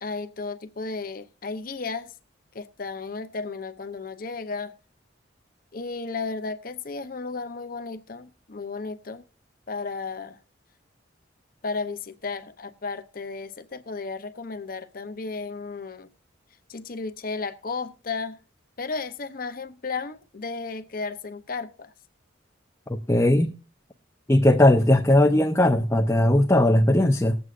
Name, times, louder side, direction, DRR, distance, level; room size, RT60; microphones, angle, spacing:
voice 1, 0.0-2.1 2.5-4.7 5.7-9.2 9.7-10.4 11.6-16.1 16.7-18.4 18.8-21.9, left 4 dB, 45° left, 0.7 m, -34 dB
voice 2, 22.9-23.5 24.3-27.4, left 1 dB, 15° left, 0.6 m, -19 dB
20.0 x 7.9 x 2.5 m
head